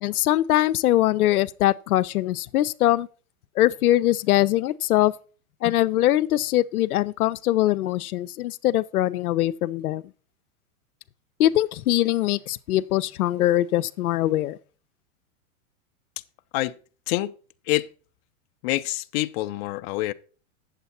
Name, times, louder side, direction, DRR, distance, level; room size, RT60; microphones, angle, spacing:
voice 1, 0.0-3.1 3.6-5.1 5.6-10.0 11.4-14.6, left 14 dB, 85° left, 0.6 m, -22 dB
voice 2, 18.6-20.1, left 18 dB, 45° left, 0.5 m, -26 dB
8.2 x 7.4 x 4.2 m
hypercardioid pair, 135°, 43 cm